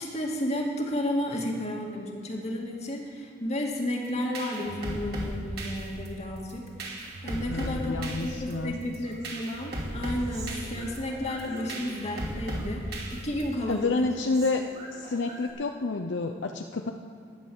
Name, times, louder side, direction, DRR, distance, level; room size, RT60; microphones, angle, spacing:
voice 1, 0.0-6.6 7.2-14.1, left 1 dB, 35° left, 0 dB, 2.0 m, -32 dB
sound 1, 4.0-13.7, right 1 dB, 50° right, 2.9 m, -36 dB
voice 2, 7.5-8.7 13.7-14.6 14.9-16.9, left 3 dB, 65° left, 5 dB, 0.6 m, -29 dB
Human voice, 7.5-8.7 9.0-12.2 12.5-13.3 13.5-15.5, right 2 dB, 35° right, 2.5 m, -48 dB
12.0 x 10.0 x 7.1 m, 2.5 s
head